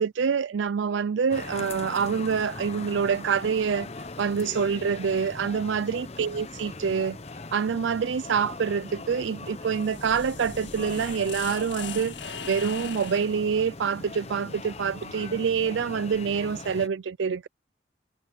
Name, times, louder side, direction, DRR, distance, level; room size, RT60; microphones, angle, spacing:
voice 1, 0.0-3.9 4.2-7.2 7.5-17.5, right 6 dB, 80° right, 0.4 m, -26 dB
sound 1, 1.3-16.9, left 3 dB, 35° left, 0.8 m, -40 dB
sound 2, 9.6-13.4, left 6 dB, 75° left, 1.7 m, -40 dB
head